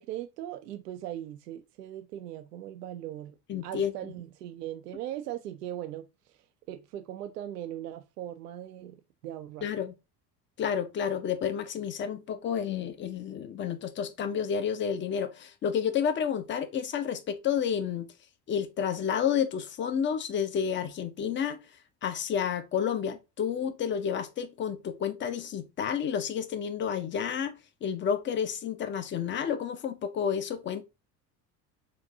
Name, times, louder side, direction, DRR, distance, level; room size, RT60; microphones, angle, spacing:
voice 1, 0.0-3.4 3.6-6.1 6.7-9.7, right 12 dB, 70° right, 0.6 m, -39 dB
voice 2, 3.5-3.9 9.6-9.9 10.6-18.1 18.5-21.6 22.0-30.8, left 8 dB, 25° left, 0.5 m, -30 dB
6.2 x 2.6 x 2.6 m
figure-of-eight pair, 60°, 49 cm